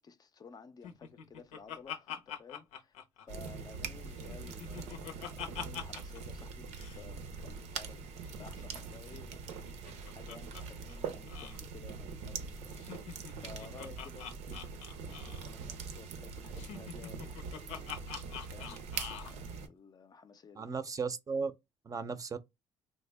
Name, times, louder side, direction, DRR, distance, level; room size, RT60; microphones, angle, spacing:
voice 1, 0.0-3.0 3.2-9.8 10.1-18.0 18.5-20.7, left 5 dB, 35° left, 0.4 m, -54 dB
Laughter, 0.8-3.8 4.1-6.2 6.5-6.6 6.7-7.0 8.2-10.6 10.9-11.0 11.3-11.6 12.7-15.5 16.5-19.3, left 8 dB, 90° left, 0.6 m, -45 dB
sound 1, 3.3-19.7, right 5 dB, 85° right, 0.6 m, -43 dB
voice 2, 20.6-21.5 21.8-22.4, right 5 dB, 30° right, 0.5 m, -35 dB
3.4 x 2.1 x 3.3 m
cardioid pair, 90°, 11 cm